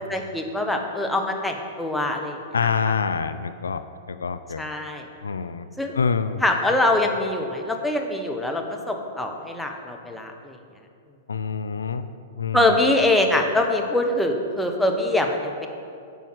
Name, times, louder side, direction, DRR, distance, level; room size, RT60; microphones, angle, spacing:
voice 1, 0.1-2.9 4.6-5.1 5.8-6.0 6.4-10.6 12.5-15.7, left 1 dB, 5° left, 2 dB, 1.2 m, -24 dB
voice 2, 2.5-4.6 5.2-5.7 5.9-6.4 11.3-12.0 12.4-12.8, left 5 dB, 85° left, 11 dB, 0.4 m, -26 dB
9.3 x 5.6 x 7.8 m, 2.5 s
hypercardioid pair, 110°, 0 cm